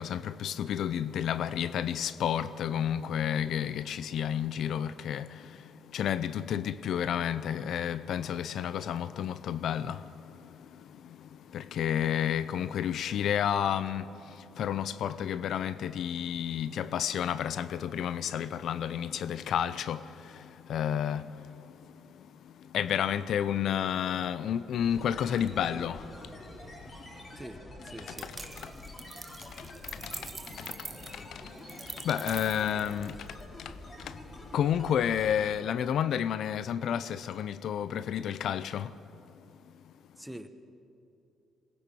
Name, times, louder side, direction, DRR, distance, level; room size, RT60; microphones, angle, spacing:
voice 1, 0.0-5.6 5.9-21.5 22.2-22.3 22.7-26.1 28.1-28.7 29.6-34.2 34.5-38.9, left 9 dB, 70° left, 0.6 m, -31 dB
sound 1, 24.8-35.6, left 1 dB, 35° left, 4.9 m, -47 dB
voice 2, 27.8-28.3 40.2-40.5, right 1 dB, 5° right, 1.3 m, -44 dB
sound 2, 28.2-33.4, right 4 dB, 30° right, 0.6 m, -44 dB
21.0 x 19.5 x 7.0 m
cardioid pair, 90°, 0 cm